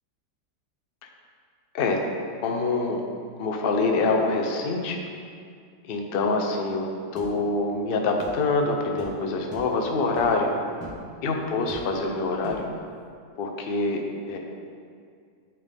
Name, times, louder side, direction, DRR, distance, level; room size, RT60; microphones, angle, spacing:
voice 1, 2.4-3.0 3.4-5.0 5.8-6.9 7.1-10.5 11.2-12.7 13.4-14.0 14.3-14.4, left 3 dB, 55° left, 2 dB, 0.6 m, -25 dB
sound 1, 7.2-7.3 8.2-8.4 9.0-9.1 9.5-9.7 10.1-10.4 10.8-11.0 11.7-12.0 12.4-12.7, equal, 15° left, 1.5 m, -41 dB
11.5 x 4.3 x 3.5 m, 2.2 s
omnidirectional pair, 2.0 m